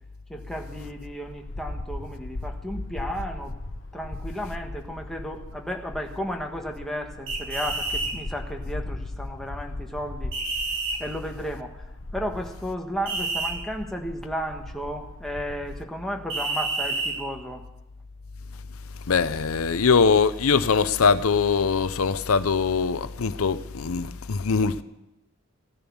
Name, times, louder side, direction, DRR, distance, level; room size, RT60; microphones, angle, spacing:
voice 1, 0.3-3.5 3.9-10.3 11.0-11.8 12.1-17.6, equal, ahead, 1.5 m, -33 dB
sound 1, 0.8-15.8, left 2 dB, 65° left, 0.9 m, -38 dB
metal whistle, 7.3-8.1 10.3-11.0 13.1-13.5 16.3-17.1, right 3 dB, 65° right, 6.8 m, -28 dB
voice 2, 19.1-24.8, left 5 dB, 85° left, 0.6 m, -22 dB
15.5 x 10.5 x 7.1 m
head